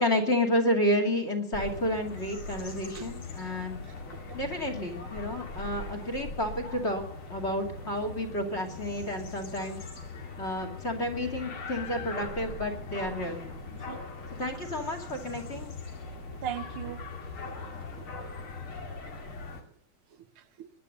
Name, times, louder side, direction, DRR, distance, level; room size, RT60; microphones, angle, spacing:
voice 1, 0.0-3.8 4.3-7.0 7.3-9.8 10.4-13.6 14.4-15.7, left 1 dB, 30° left, 2.7 m, -30 dB
sound 1, 1.5-19.6, left 3 dB, 75° left, 3.2 m, -41 dB
voice 2, 3.9-4.4 13.7-14.0 16.4-17.1 17.9-18.1 18.9-19.0 20.4-20.7, right 10 dB, 85° right, 1.9 m, -40 dB
21.0 x 10.5 x 6.6 m
omnidirectional pair, 2.4 m